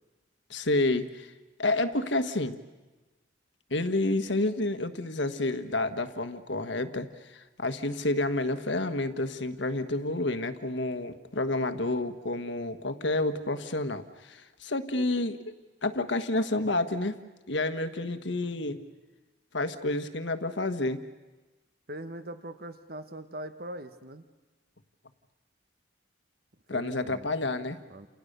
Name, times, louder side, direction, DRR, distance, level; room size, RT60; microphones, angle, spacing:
voice 1, 0.5-1.3 1.6-2.6 3.7-15.5 15.8-17.2 17.5-18.8 19.5-21.0 26.7-27.8, left 2 dB, 70° left, 10 dB, 1.5 m, -29 dB
voice 2, 21.9-24.2 26.7-27.5 27.9-28.1, right 1 dB, 50° right, 10 dB, 1.3 m, -41 dB
30.0 x 28.5 x 6.8 m, 1.2 s
head